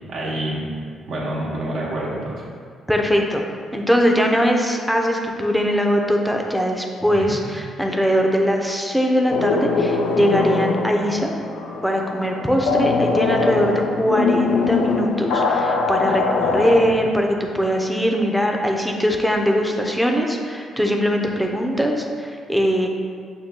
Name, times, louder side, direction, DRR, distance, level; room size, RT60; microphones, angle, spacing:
voice 1, 0.1-0.6 1.1-2.4 7.1-7.3 16.4-16.9, right 1 dB, 75° right, -5 dB, 1.0 m, -28 dB
voice 2, 2.9-3.4 3.7-11.3 11.8-22.9, equal, ahead, 1 dB, 0.5 m, -21 dB
sound 1, 9.3-16.9, left 4 dB, 90° left, 0.4 m, -22 dB
6.4 x 2.2 x 3.7 m, 2.1 s
cardioid pair, 90°, 0 cm